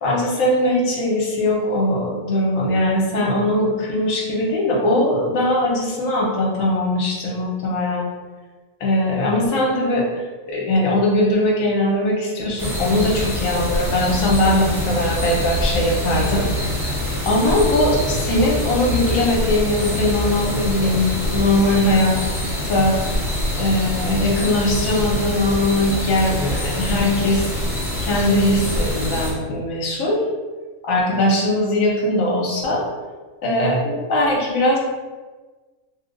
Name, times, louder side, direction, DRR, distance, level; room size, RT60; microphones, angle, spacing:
voice 1, 0.0-8.1 8.8-10.0 10.5-16.4 16.7-16.8 17.2-22.1 22.7-23.0 23.6-27.5 28.0-30.2 30.8-32.8 33.4-34.8, left 1 dB, 75° left, -2 dB, 1.1 m, -20 dB
sound 1, 12.6-29.3, left 1 dB, 5° right, 0.5 m, -25 dB
sound 2, 13.0-20.3, equal, 50° right, 0.6 m, -30 dB
2.9 x 2.2 x 3.8 m, 1.3 s
omnidirectional pair, 1.4 m